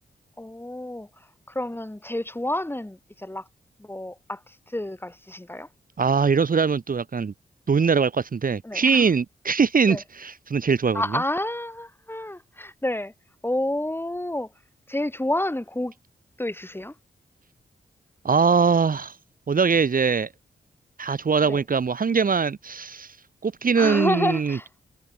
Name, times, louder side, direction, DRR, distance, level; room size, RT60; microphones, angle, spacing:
voice 1, 0.4-1.1 1.5-3.5 3.8-5.7 8.6-9.1 9.9-10.0 10.9-13.1 13.4-14.5 14.9-15.9 16.4-16.9 21.5-21.6 23.8-24.7, left 1 dB, 10° left, 7.0 m, -29 dB
voice 2, 6.0-7.3 7.7-11.2 18.2-19.2 19.5-20.3 21.0-23.2 23.4-24.6, right 5 dB, 50° right, 1.5 m, -22 dB
cardioid pair, 80°, 18 cm